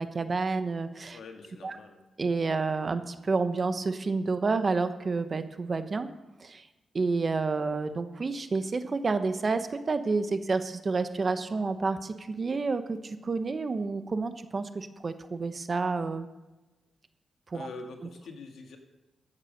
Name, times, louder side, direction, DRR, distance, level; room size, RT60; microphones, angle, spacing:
voice 1, 0.0-1.2 1.6-1.8 2.2-6.1 6.4-6.6 6.9-16.3 17.5-17.7, right 4 dB, 40° right, 10 dB, 1.0 m, -29 dB
voice 2, 1.1-2.0 17.5-18.8, left 3 dB, 80° left, 4 dB, 1.9 m, -44 dB
15.0 x 7.3 x 6.6 m, 1.1 s
cardioid pair, 100°, 0 cm